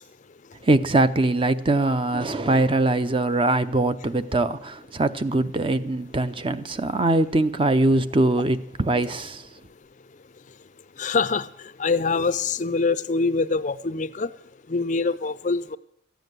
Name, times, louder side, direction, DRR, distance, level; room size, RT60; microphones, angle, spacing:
voice 1, 0.6-9.5, right 2 dB, 25° right, 0.5 m, -22 dB
voice 2, 11.0-14.3 14.7-15.8, left 4 dB, 40° left, 0.5 m, -24 dB
14.0 x 9.2 x 8.0 m
head